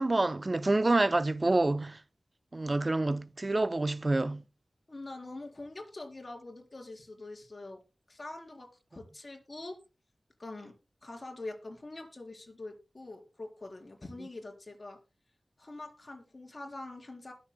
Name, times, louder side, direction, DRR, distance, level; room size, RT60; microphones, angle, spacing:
voice 1, 0.0-2.0 2.5-4.4, right 2 dB, 35° right, 0.6 m, -27 dB
voice 2, 4.9-7.8 8.1-9.8 10.4-10.7 11.0-15.0 15.6-17.3, left 2 dB, 40° left, 3.8 m, -44 dB
20.5 x 7.3 x 2.2 m
wide cardioid pair, 80°, 0 cm